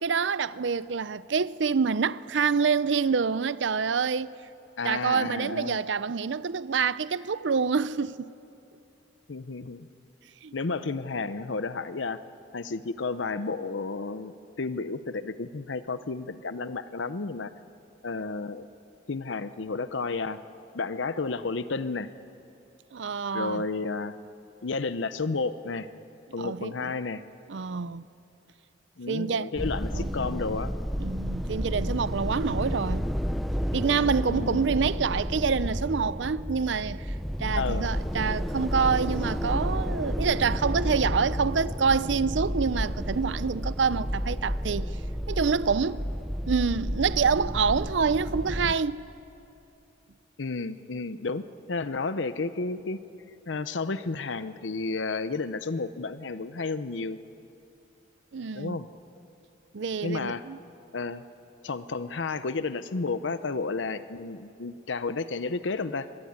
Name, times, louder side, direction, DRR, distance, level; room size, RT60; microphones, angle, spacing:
voice 1, 0.0-4.4 4.8-8.3 10.4-10.5 22.9-23.6 26.4-26.9 27.5-28.0 29.1-29.5 29.9-30.1 31.0-33.1 33.7-44.9 45.3-46.1 46.5-49.0 58.3-58.8 59.7-60.6, right 5 dB, 75° right, 0.6 m, -27 dB
voice 2, 4.8-5.8 9.3-9.9 10.5-12.2 12.5-17.5 18.0-18.7 19.1-20.4 20.7-22.1 23.3-24.2 24.6-25.9 26.3-27.2 29.0-30.7 34.3-34.7 37.6-37.9 50.4-51.4 51.7-53.0 53.5-57.2 58.5-58.9 60.0-60.4 60.9-61.2 61.6-66.1, left 3 dB, 80° left, 0.8 m, -32 dB
sound 1, 29.6-48.8, equal, ahead, 0.7 m, -31 dB
25.5 x 22.0 x 9.6 m
head